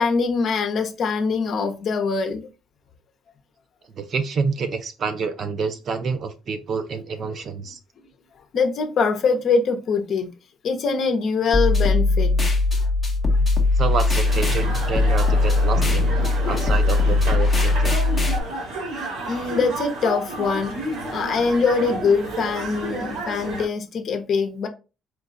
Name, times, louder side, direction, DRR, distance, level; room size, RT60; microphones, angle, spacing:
voice 1, 0.0-2.5 8.5-10.3 10.6-12.3 12.8-12.9 16.2-16.8 19.3-20.7 21.1-24.7, left 5 dB, 45° left, 0.8 m, -23 dB
voice 2, 4.0-7.8 13.8-16.2 16.5-18.0, right 5 dB, 45° right, 0.5 m, -28 dB
sound 1, 11.5-18.4, left 2 dB, 10° left, 0.9 m, -20 dB
sound 2, 14.2-23.7, right 2 dB, 70° right, 1.9 m, -31 dB
4.6 x 2.3 x 3.9 m
cardioid pair, 160°, 0 cm